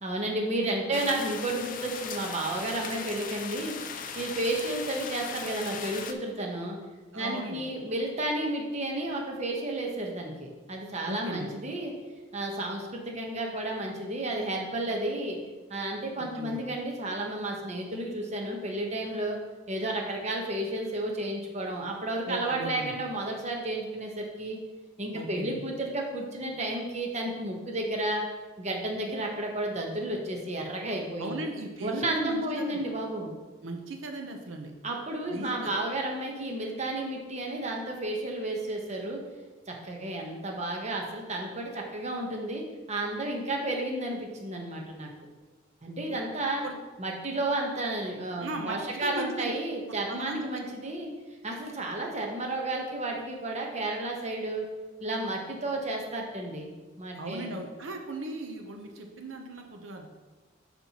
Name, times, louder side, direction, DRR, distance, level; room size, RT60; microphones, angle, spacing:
voice 1, 0.0-3.8 4.2-6.8 7.1-11.9 12.3-15.4 15.7-19.4 19.7-24.6 25.0-28.2 28.6-31.4 31.8-33.3 34.8-39.2 39.7-45.1 45.8-46.6 47.0-51.1 51.4-54.7 55.0-56.7 57.0-57.5, right 1 dB, 35° right, 1 dB, 1.0 m, -32 dB
voice 2, 0.6-1.0 7.1-7.6 11.0-11.5 16.4-16.6 22.3-22.9 25.1-25.6 31.2-32.8 33.6-34.7 35.3-35.7 46.0-46.2 46.6-46.7 48.4-49.5 50.1-50.4 57.1-60.1, right 2 dB, 80° right, 3 dB, 0.7 m, -38 dB
sound 1, 0.9-6.1, left 6 dB, 45° left, 0.5 m, -38 dB
11.0 x 4.4 x 2.9 m, 1.3 s
head